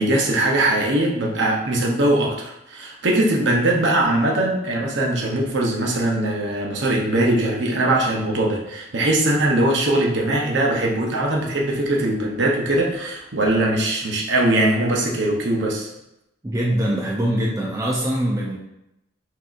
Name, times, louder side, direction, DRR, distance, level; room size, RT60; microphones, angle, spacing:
voice 1, 0.0-15.9, right 1 dB, 65° right, -1 dB, 0.8 m, -21 dB
voice 2, 16.4-18.6, right 1 dB, 15° right, -3 dB, 0.4 m, -23 dB
5.9 x 2.8 x 2.5 m, 0.88 s
head